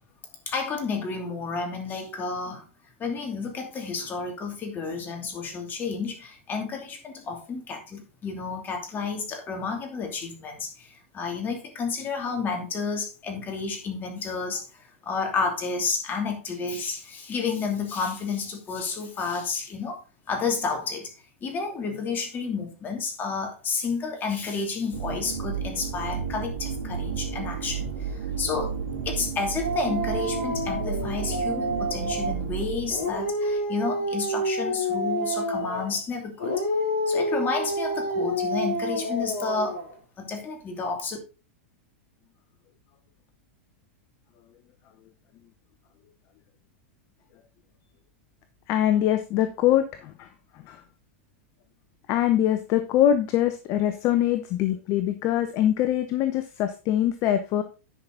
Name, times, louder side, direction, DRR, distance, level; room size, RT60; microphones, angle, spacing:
voice 1, 0.5-2.7 3.0-20.0 20.3-21.1 21.4-28.8 29.0-36.5 37.1-39.8 40.2-41.2, left 4 dB, 25° left, 3 dB, 2.8 m, -31 dB
sound 1, 24.9-33.2, right 6 dB, 80° right, 2.6 m, -32 dB
Dog, 29.6-32.4 32.9-36.0 36.4-39.9, equal, 65° left, 5.5 m, -28 dB
voice 2, 48.7-50.3 50.7-50.8 52.1-57.6, left 11 dB, 45° left, 10 dB, 0.9 m, -23 dB
10.5 x 5.9 x 3.9 m, 0.32 s
hypercardioid pair, 120°, 7 cm